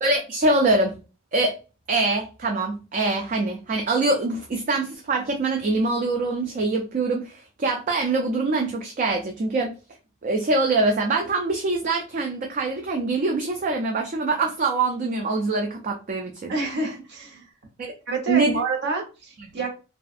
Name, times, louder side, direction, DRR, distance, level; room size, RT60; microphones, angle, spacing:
voice 1, 0.0-1.0 1.3-1.6 1.9-9.7 10.2-16.5 17.8-17.9 18.3-18.6 19.5-19.6, right 3 dB, 40° right, 2 dB, 0.3 m, -24 dB
voice 2, 16.5-17.5 18.1-19.7, right 3 dB, 55° right, 2 dB, 0.8 m, -28 dB
2.5 x 2.3 x 2.4 m, 0.32 s
head